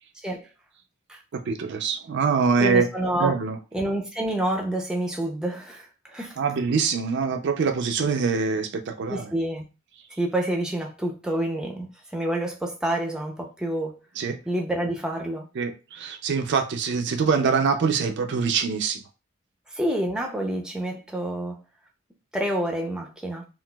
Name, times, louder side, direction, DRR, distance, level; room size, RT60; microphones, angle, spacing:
voice 1, 1.3-2.9 3.1-3.6 6.4-9.2 14.2-14.4 15.6-19.0, right 5 dB, 55° right, 0.4 m, -24 dB
voice 2, 2.6-3.3 3.7-6.4 9.1-9.6 10.2-11.9 12.1-13.9 14.5-15.4 19.7-21.6 22.3-23.5, right 1 dB, 5° right, 0.5 m, -28 dB
3.9 x 2.4 x 2.2 m
head